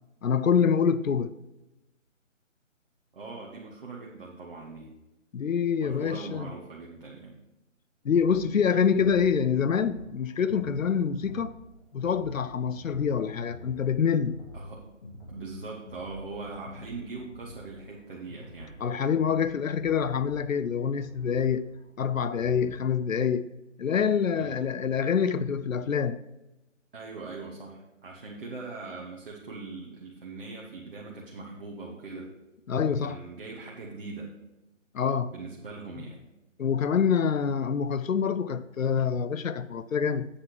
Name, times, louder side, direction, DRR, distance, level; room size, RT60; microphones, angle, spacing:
voice 1, 0.2-1.3 5.3-6.5 8.0-11.5 11.9-14.4 18.8-21.7 22.0-23.5 23.8-26.2 32.7-33.2 34.9-35.4 36.6-40.3, left 7 dB, 85° left, 0.6 m, -26 dB
voice 2, 3.1-4.9 5.8-7.4 14.5-14.8 15.3-18.8 24.3-24.6 26.9-32.3 33.0-34.3 35.3-36.2, right 3 dB, 45° right, 1.3 m, -41 dB
sound 1, 8.1-22.9, left 1 dB, 45° left, 2.4 m, -48 dB
8.3 x 5.6 x 5.1 m
figure-of-eight pair, 155°, 39 cm